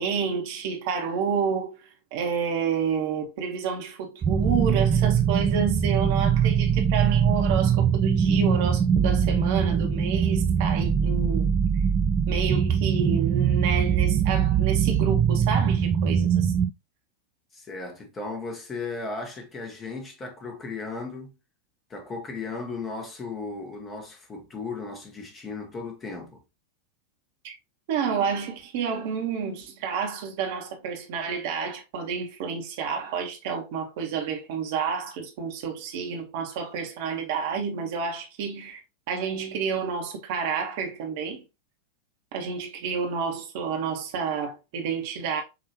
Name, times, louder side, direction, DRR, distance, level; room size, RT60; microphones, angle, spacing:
voice 1, 0.0-1.7 2.1-11.5 12.3-16.5 27.4-27.5 27.9-38.8 39.1-41.4 42.3-45.4, right 6 dB, 50° right, 1.3 m, -29 dB
sound 1, 4.2-16.7, right 7 dB, 25° right, 0.3 m, -22 dB
voice 2, 17.5-21.3 21.9-26.4, left 3 dB, 20° left, 1.3 m, -36 dB
6.0 x 2.8 x 3.0 m
figure-of-eight pair, 90°, 0 cm